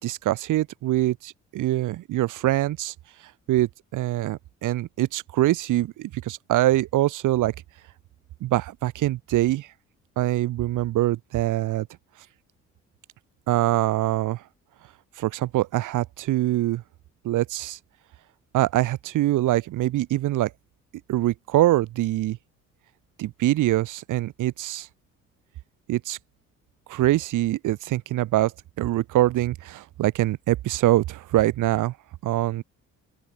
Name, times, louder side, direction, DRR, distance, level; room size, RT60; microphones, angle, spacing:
voice 1, 0.0-2.9 3.5-7.5 8.4-9.7 10.2-11.9 13.5-14.4 15.2-16.8 17.2-17.8 18.5-20.5 21.1-22.4 23.2-24.9 25.9-26.2 26.9-28.5 28.8-31.9 32.2-32.6, right 15 dB, 90° right, 5.9 m, -24 dB
open air
cardioid pair, 90°, 30 cm